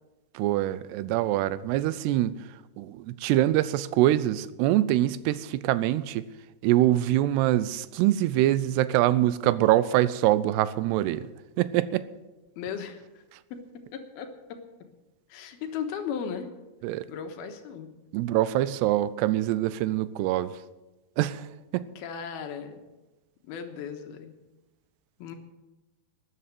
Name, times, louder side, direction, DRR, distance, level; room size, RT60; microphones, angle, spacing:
voice 1, 0.3-2.4 2.8-6.3 6.6-11.3 11.6-12.0 16.8-17.1 18.1-20.5 21.2-21.5 21.7-21.8, right 14 dB, 85° right, 16 dB, 2.7 m, -24 dB
voice 2, 12.6-13.2 13.5-14.9 15.3-16.5 17.1-17.9 22.0-22.8 23.4-24.3 25.2-25.4, left 7 dB, 75° left, 6 dB, 3.0 m, -37 dB
13.0 x 10.0 x 7.7 m, 1.1 s
omnidirectional pair, 4.8 m